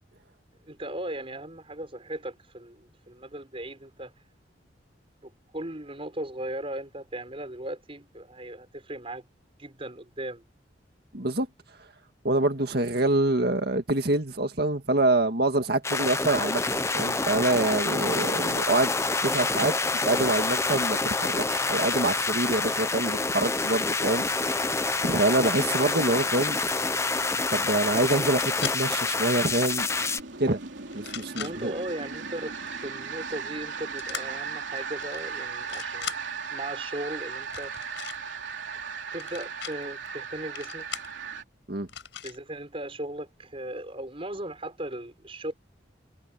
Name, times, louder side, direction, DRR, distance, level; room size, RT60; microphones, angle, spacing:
voice 1, 0.7-4.1 5.2-9.2 9.6-10.4 19.2-19.5 31.4-36.2 36.5-37.7 39.1-40.9 42.2-45.5, right 1 dB, 30° right, 5.9 m, -37 dB
voice 2, 11.1-11.5 12.2-16.6 16.9-18.9 19.2-19.7 20.0-24.7 25.0-26.6 27.5-29.9 30.4-30.6 30.9-31.7 41.7-41.9, right 2 dB, 55° right, 2.0 m, -26 dB
sound 1, 15.8-30.2, left 3 dB, 15° left, 0.7 m, -27 dB
sound 2, 24.3-41.4, right 6 dB, 80° right, 3.1 m, -38 dB
sound 3, 28.4-28.8 29.6-30.2 30.9-31.5 34.0-34.2 35.0-35.2 35.5-36.2 37.4-38.2 39.1-39.7 40.6-41.1 41.9-42.4, left 9 dB, 90° left, 4.8 m, -38 dB
head